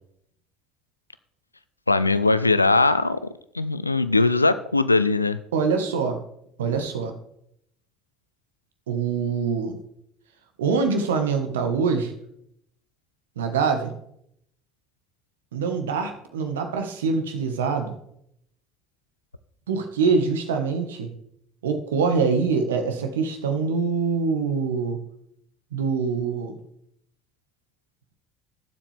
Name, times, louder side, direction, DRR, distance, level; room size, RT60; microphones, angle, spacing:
voice 1, 1.9-5.4, left 3 dB, 90° left, 14 dB, 0.4 m, -20 dB
voice 2, 5.5-6.2 6.6-7.1 8.9-9.8 10.6-12.1 13.3-13.9 15.5-18.0 19.7-21.1 21.6-25.0 25.7-26.5, right 5 dB, 75° right, 6 dB, 1.5 m, -24 dB
18.0 x 7.5 x 3.5 m, 0.73 s
figure-of-eight pair, 60°, 0 cm